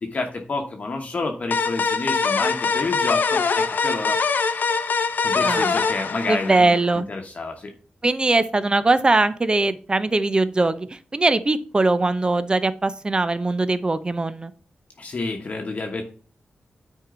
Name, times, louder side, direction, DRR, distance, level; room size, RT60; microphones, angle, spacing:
voice 1, 0.0-4.2 5.2-7.7 15.0-16.0, left 3 dB, 40° left, 2 dB, 1.2 m, -29 dB
sound 1, 1.5-6.9, left 5 dB, 60° left, 0.7 m, -23 dB
voice 2, 5.3-5.7 6.3-7.0 8.0-14.5, right 2 dB, 25° right, 14 dB, 0.6 m, -21 dB
9.8 x 4.6 x 3.8 m, 0.40 s
wide cardioid pair, 120°, 4 cm